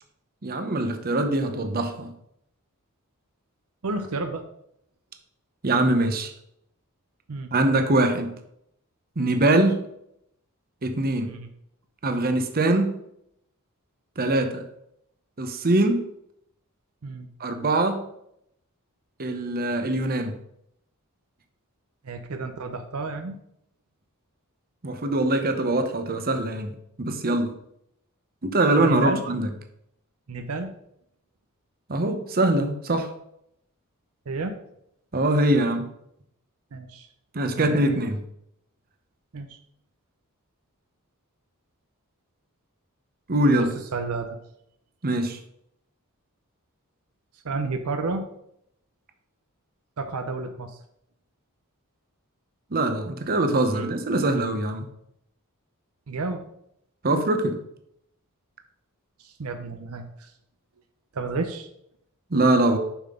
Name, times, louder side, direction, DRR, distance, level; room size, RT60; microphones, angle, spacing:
voice 1, 0.4-2.1 5.6-6.3 7.5-8.3 9.2-9.8 10.8-11.3 12.0-12.9 14.2-14.6 15.4-16.0 17.4-18.0 19.2-20.3 24.8-27.5 28.4-29.5 31.9-33.1 35.1-35.9 37.3-38.2 43.3-43.7 45.0-45.4 52.7-54.8 57.0-57.6 62.3-62.8, right 2 dB, 45° right, 6 dB, 0.8 m, -23 dB
voice 2, 3.8-4.4 7.3-7.5 11.3-11.5 17.0-17.3 22.0-23.4 28.8-29.2 30.3-30.7 34.3-34.6 36.7-37.1 37.5-38.0 39.3-39.6 43.5-44.4 47.4-48.3 50.0-50.8 53.7-53.9 56.1-56.4 59.2-60.3 61.1-61.7, right 3 dB, 75° right, 7 dB, 0.7 m, -31 dB
7.1 x 5.8 x 3.7 m, 0.74 s
head